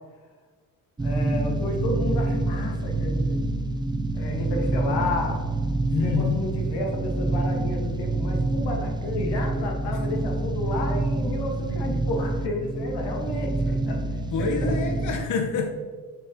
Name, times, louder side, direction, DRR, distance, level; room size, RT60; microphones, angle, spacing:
voice 1, 1.0-3.4 4.1-5.4 6.0-14.0 14.4-14.7, left 2 dB, 85° left, 1 dB, 1.4 m, -31 dB
sound 1, 1.0-15.2, right 2 dB, 10° right, 0.4 m, -27 dB
voice 2, 5.9-6.4 14.3-15.7, left 5 dB, 50° left, 4 dB, 0.7 m, -27 dB
4.8 x 4.3 x 4.9 m, 1.5 s
cardioid pair, 100°, 39 cm